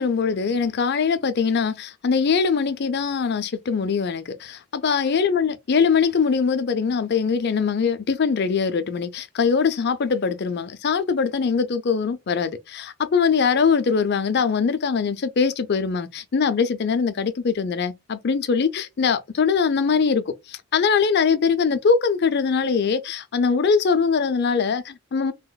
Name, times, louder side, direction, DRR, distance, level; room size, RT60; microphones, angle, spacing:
voice 1, 0.0-25.3, left 5 dB, 50° left, 0.5 m, -22 dB
4.0 x 2.9 x 2.2 m
head